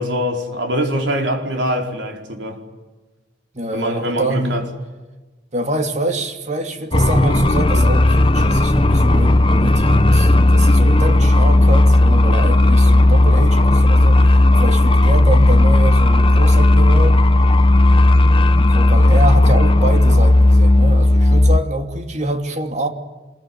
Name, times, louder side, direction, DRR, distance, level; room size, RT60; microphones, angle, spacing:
voice 1, 0.0-2.6 3.7-4.7, equal, 75° right, 4.9 m, -23 dB
voice 2, 3.5-4.5 5.5-14.2 14.5-17.2 18.7-22.9, right 1 dB, 40° right, 2.7 m, -25 dB
sound 1, 6.9-21.6, left 1 dB, 30° left, 0.9 m, -13 dB
27.0 x 22.0 x 9.6 m
head